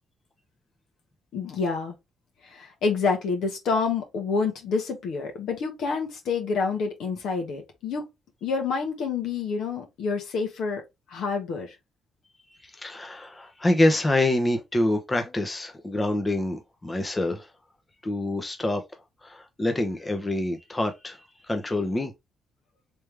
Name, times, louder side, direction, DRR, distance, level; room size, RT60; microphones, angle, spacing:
voice 1, 1.3-1.9 2.4-8.0 8.4-10.8 11.1-11.8, left 4 dB, 75° left, 1.3 m, -28 dB
voice 2, 12.6-17.5 18.0-18.8 19.2-21.2 21.5-22.1, left 1 dB, 20° left, 0.8 m, -26 dB
3.4 x 3.1 x 3.3 m
cardioid pair, 90°, 0 cm